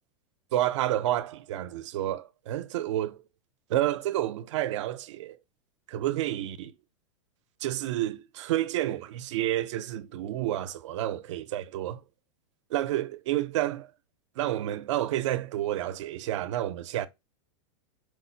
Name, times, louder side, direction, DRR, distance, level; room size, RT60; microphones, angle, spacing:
voice 1, 0.5-3.2 3.7-5.4 5.9-6.7 7.6-12.0 12.7-13.9 14.4-17.1, right 13 dB, 65° right, 0.4 m, -30 dB
4.5 x 2.0 x 2.6 m
supercardioid pair, 160°, 17 cm